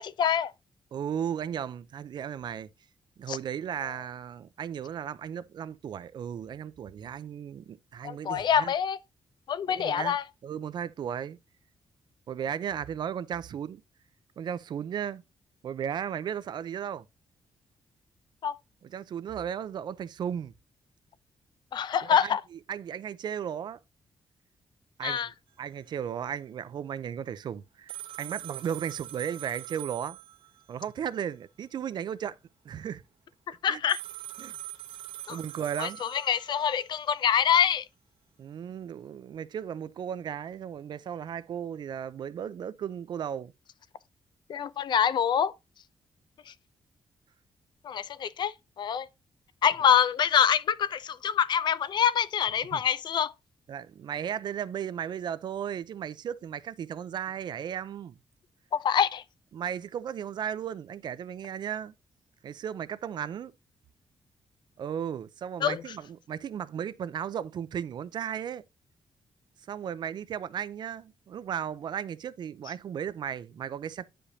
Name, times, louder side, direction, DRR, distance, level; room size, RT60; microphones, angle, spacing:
voice 1, 0.2-0.5 3.3-3.4 8.0-9.0 9.5-10.2 18.4-18.5 21.7-22.4 25.0-25.3 33.6-34.0 35.3-35.4 35.8-37.8 44.5-45.5 47.8-49.1 49.6-53.3 58.7-59.2 65.6-65.8, left 8 dB, 55° left, 0.5 m, -25 dB
voice 2, 0.9-2.7 3.2-8.7 9.7-10.2 10.4-11.4 12.3-13.8 14.4-15.2 15.6-17.1 18.8-20.5 22.0-23.8 25.0-25.3 25.6-30.2 30.7-32.3 32.6-33.0 33.7-33.8 34.4-34.6 35.3-36.0 38.4-43.5 52.7-52.8 53.7-58.2 59.5-61.9 62.4-63.5 64.8-68.6 69.7-74.1, right 8 dB, 55° right, 0.5 m, -35 dB
sound 1, 27.9-30.7 33.9-36.9, right 14 dB, 90° right, 1.4 m, -42 dB
9.9 x 5.1 x 2.7 m
wide cardioid pair, 180°, 9 cm